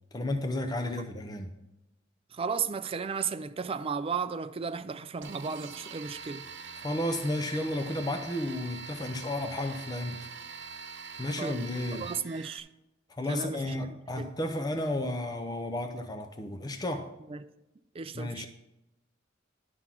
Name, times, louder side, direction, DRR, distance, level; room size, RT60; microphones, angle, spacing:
voice 1, 0.1-1.5 6.8-10.3 11.2-12.1 13.1-17.1 18.1-18.5, left 1 dB, 20° left, 0.5 m, -32 dB
voice 2, 2.3-6.5 11.4-11.6 11.9-12.7 13.3-14.3 17.3-17.4 17.9-18.5, right 5 dB, 30° right, 0.4 m, -34 dB
sound 1, 5.2-12.6, right 5 dB, 65° right, 0.8 m, -44 dB
11.5 x 3.9 x 5.9 m
head